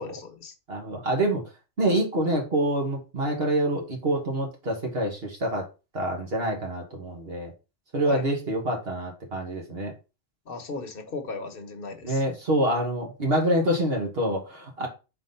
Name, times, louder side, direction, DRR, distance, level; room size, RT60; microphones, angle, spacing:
voice 1, 0.0-0.5 8.1-8.2 10.5-12.2, left 3 dB, 60° left, 1.2 m, -37 dB
voice 2, 0.7-1.4 1.8-5.6 5.9-7.5 7.9-9.9 12.0-14.9, right 1 dB, 65° right, 1.8 m, -26 dB
4.5 x 4.0 x 5.6 m
omnidirectional pair, 1.1 m